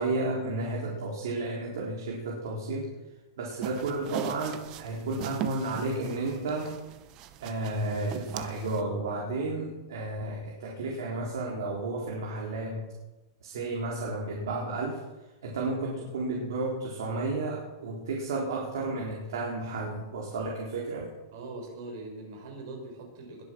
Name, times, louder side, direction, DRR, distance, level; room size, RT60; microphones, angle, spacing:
voice 1, 0.0-2.9 3.4-6.7 7.4-12.8 13.4-15.0 15.4-21.1, right 2 dB, 70° right, -3 dB, 4.1 m, -32 dB
sound 1, 3.6-8.8, right 10 dB, 25° right, 0.7 m, -40 dB
voice 2, 21.3-23.4, right 2 dB, 50° right, 2 dB, 5.3 m, -41 dB
21.0 x 8.3 x 6.4 m, 1.1 s
supercardioid pair, 175°, 2 cm